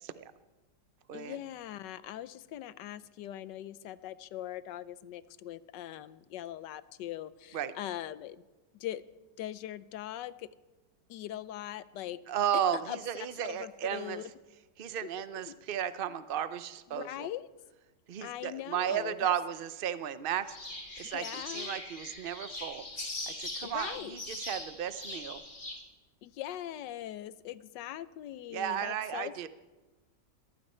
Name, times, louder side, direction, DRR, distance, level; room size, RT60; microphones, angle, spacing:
voice 1, 1.1-8.4 8.7-9.0 9.4-10.5 11.1-12.2 12.9-13.0 13.4-14.3 15.0-15.6 16.9-17.5 18.2-19.3 21.0-21.7 23.6-24.2 26.2-29.5, left 12 dB, 80° left, 16 dB, 1.3 m, -41 dB
voice 2, 12.3-14.2 14.8-17.3 18.1-20.6 21.0-22.8 23.3-25.4 28.5-29.5, right 9 dB, 85° right, 13 dB, 0.4 m, -34 dB
sound 1, 20.5-25.8, left 2 dB, 30° left, 2.2 m, -41 dB
22.0 x 14.5 x 4.4 m, 1.2 s
omnidirectional pair, 1.9 m